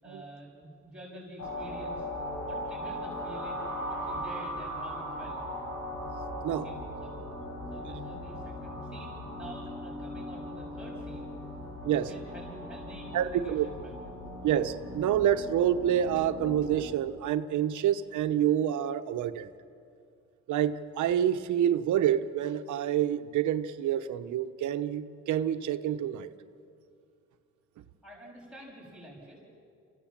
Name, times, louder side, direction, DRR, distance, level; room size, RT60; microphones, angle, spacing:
voice 1, 0.0-2.1 2.4-5.4 6.5-6.7 7.0-7.1 7.7-11.3 11.8-13.7 28.0-29.4, right 1 dB, 5° right, -4 dB, 7.1 m, -48 dB
sound 1, 1.4-16.8, equal, 65° left, 6.7 m, -39 dB
voice 2, 13.1-13.7 14.4-19.5 20.5-26.3, right 10 dB, 75° right, 9 dB, 1.0 m, -27 dB
26.5 x 16.0 x 7.4 m, 2.4 s
cardioid pair, 90°, 30 cm